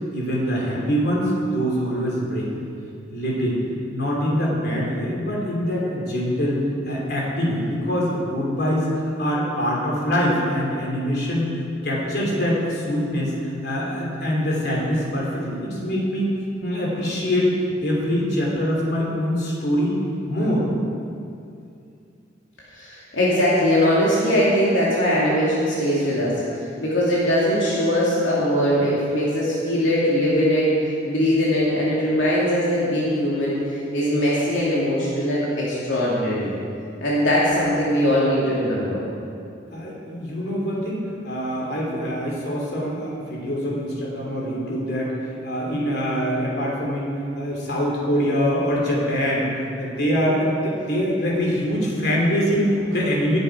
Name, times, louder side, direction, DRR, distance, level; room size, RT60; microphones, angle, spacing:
voice 1, 0.1-2.5 3.1-3.6 3.9-6.6 6.9-11.5 11.8-13.3 13.6-16.3 16.6-17.5 17.8-20.0 20.3-20.7 39.7-49.5 49.8-53.4, equal, 55° left, -4 dB, 3.2 m, -24 dB
voice 2, 22.7-30.7 31.0-33.6 33.9-36.5 37.0-39.0, equal, 80° left, -7 dB, 2.5 m, -21 dB
18.0 x 8.0 x 4.8 m, 2.5 s
head